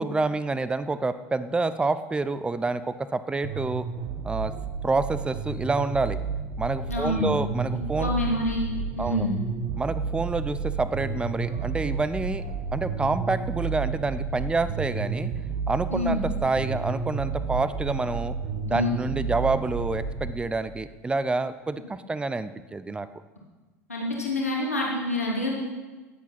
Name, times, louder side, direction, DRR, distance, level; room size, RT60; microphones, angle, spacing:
voice 1, 0.0-3.9 4.2-4.5 4.8-6.2 6.6-8.1 9.0-9.3 9.8-12.4 12.7-15.3 15.7-18.3 18.6-23.1, right 3 dB, 15° right, 13 dB, 0.8 m, -28 dB
sound 1, 3.4-20.3, right 5 dB, 50° right, 1.7 m, -31 dB
voice 2, 6.9-7.3 8.0-8.6 9.0-9.3 15.9-16.2 18.7-18.9 23.9-25.5, left 2 dB, 90° left, -3 dB, 3.1 m, -27 dB
19.5 x 8.4 x 6.0 m, 1.2 s
figure-of-eight pair, 75°, 8 cm